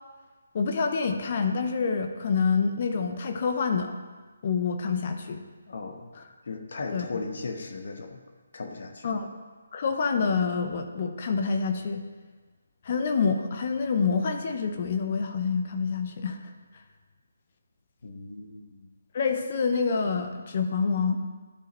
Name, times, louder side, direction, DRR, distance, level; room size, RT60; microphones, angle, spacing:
voice 1, 0.5-3.9 4.4-5.4 6.2-6.3 6.9-7.1 9.0-9.3 9.7-12.0 12.8-16.4 19.1-21.2, left 5 dB, 45° left, 5 dB, 0.7 m, -27 dB
voice 2, 5.7-6.1 6.5-8.2 8.5-9.1 18.0-18.9, left 3 dB, 60° left, 4 dB, 1.1 m, -37 dB
12.0 x 4.9 x 3.1 m, 1.3 s
figure-of-eight pair, 150°, 0 cm